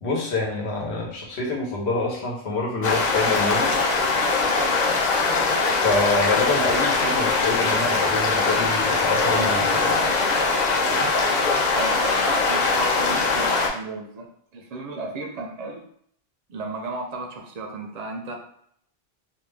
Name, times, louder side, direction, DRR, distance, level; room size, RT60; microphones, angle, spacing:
voice 1, 0.0-3.7 5.7-10.1, left 3 dB, 85° left, -1 dB, 1.1 m, -26 dB
sound 1, 2.8-13.7, left 3 dB, 50° left, 0.6 m, -21 dB
voice 2, 11.7-14.3 14.5-15.8 16.5-18.3, right 2 dB, 55° right, 1 dB, 0.4 m, -34 dB
2.5 x 2.1 x 3.2 m, 0.68 s
omnidirectional pair, 1.1 m